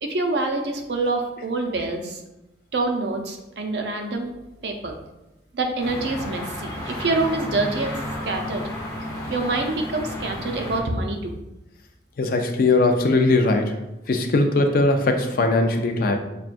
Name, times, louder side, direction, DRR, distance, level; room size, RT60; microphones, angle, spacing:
voice 1, 0.0-2.2 2.7-4.3 4.6-4.9 5.5-8.6 9.3-11.3, right 2 dB, 70° right, 3 dB, 0.6 m, -26 dB
sound 1, 5.8-10.8, left 1 dB, 20° left, 0.8 m, -32 dB
voice 2, 12.2-13.8 14.1-16.2, left 2 dB, 55° left, 5 dB, 0.4 m, -20 dB
5.9 x 2.2 x 2.5 m, 0.94 s
head